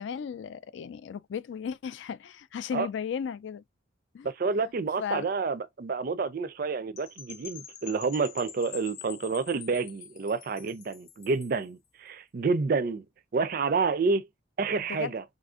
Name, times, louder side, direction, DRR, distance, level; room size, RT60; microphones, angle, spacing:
voice 1, 0.0-3.6 4.1-4.3 5.0-5.3 14.9-15.1, left 7 dB, 65° left, 0.3 m, -35 dB
voice 2, 4.2-13.0 13.3-14.3 14.6-15.2, right 4 dB, 50° right, 0.4 m, -29 dB
Percussion / Wind chime, 7.0-11.6, left 8 dB, 90° left, 0.8 m, -46 dB
4.1 x 2.5 x 2.4 m
head